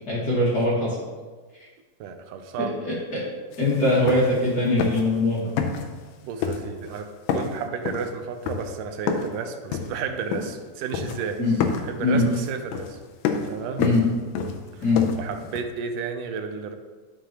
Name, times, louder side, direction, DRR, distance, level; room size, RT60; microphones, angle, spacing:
voice 1, 0.1-1.0 2.8-3.2 3.6-5.5 11.4-11.6 12.0-12.2 13.8-14.0 14.8-15.1, left 2 dB, 35° left, -7 dB, 2.2 m, -21 dB
voice 2, 2.0-2.8 6.2-13.0 13.5-13.9 14.7-14.9 15.2-16.8, right 6 dB, 85° right, 6 dB, 2.3 m, -32 dB
sound 1, 3.5-3.6 3.9-4.5 4.8-5.2 5.6-6.1 6.4-7.0 7.3-9.4 9.7-10.7 10.9-11.3 11.6-15.6, left 6 dB, 85° left, 2.2 m, -29 dB
11.5 x 6.6 x 3.0 m, 1.4 s
omnidirectional pair, 3.6 m